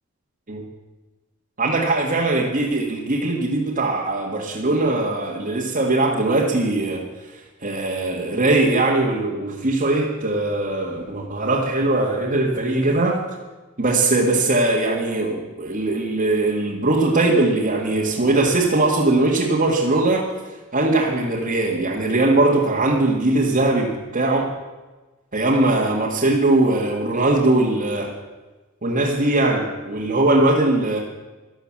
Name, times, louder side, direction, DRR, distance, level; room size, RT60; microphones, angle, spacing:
voice 1, 1.6-7.0 7.6-13.2 13.8-20.3 20.7-24.5 25.3-28.1 28.8-31.0, right 2 dB, 40° right, -4 dB, 2.0 m, -20 dB
14.0 x 12.0 x 7.4 m, 1.2 s
head